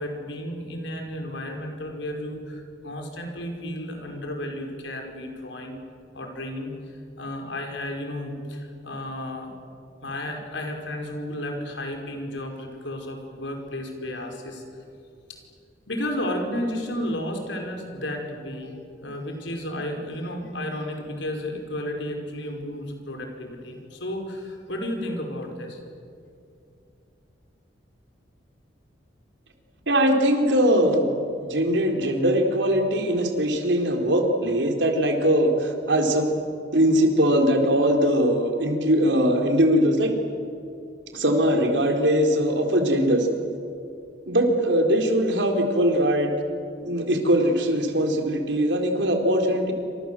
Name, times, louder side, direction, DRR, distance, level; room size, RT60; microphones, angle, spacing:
voice 1, 0.0-5.8 6.1-6.7 7.2-9.5 10.0-14.6 15.3-15.4 15.9-25.8, left 1 dB, 80° left, 3 dB, 5.2 m, -33 dB
voice 2, 29.9-31.1 31.4-36.3 36.7-40.1 41.1-43.3 44.3-46.3 46.8-49.7, equal, 75° right, 3 dB, 4.0 m, -21 dB
28.5 x 26.0 x 7.8 m, 2.5 s
head